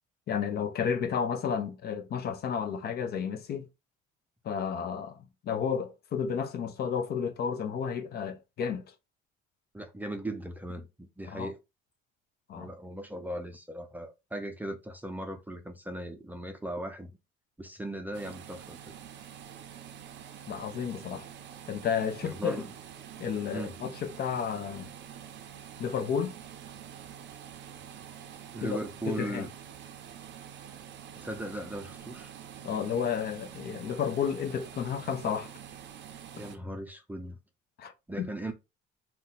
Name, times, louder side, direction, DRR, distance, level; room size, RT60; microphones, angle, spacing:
voice 1, 0.3-3.7 4.4-5.2 5.4-8.8 11.3-11.5 12.5-12.7 20.5-21.3 21.7-22.6 23.2-24.9 25.8-26.3 28.6-28.8 29.1-29.5 32.6-35.5 37.8-37.9 38.2-38.3, left 7 dB, 50° left, 0.6 m, -32 dB
voice 2, 9.7-11.6 12.6-17.1 17.6-18.9 22.2-22.7 23.5-23.7 28.5-29.5 31.2-32.3 36.3-37.4 38.1-38.5, right 1 dB, 10° right, 0.5 m, -38 dB
sound 1, 18.1-36.6, right 9 dB, 60° right, 0.5 m, -46 dB
2.6 x 2.2 x 3.8 m
supercardioid pair, 95°, 21 cm